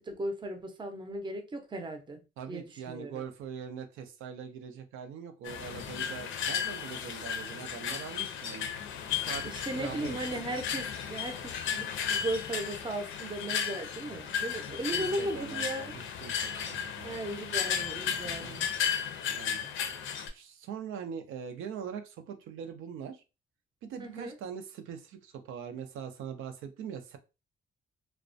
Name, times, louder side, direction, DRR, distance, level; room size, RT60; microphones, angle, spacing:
voice 1, 0.0-2.2 2.5-3.2 9.4-15.9 17.0-18.7 24.0-24.4, right 1 dB, 25° right, 5 dB, 0.5 m, -37 dB
voice 2, 2.4-8.7 9.0-9.4 9.7-10.4 14.9-17.1 18.2-18.5 19.3-19.7 20.3-23.2 23.8-27.2, right 7 dB, 85° right, 6 dB, 0.5 m, -42 dB
sound 1, 5.4-20.3, left 8 dB, 80° left, 0.5 m, -34 dB
2.3 x 2.1 x 2.5 m, 0.29 s
cardioid pair, 90°, 20 cm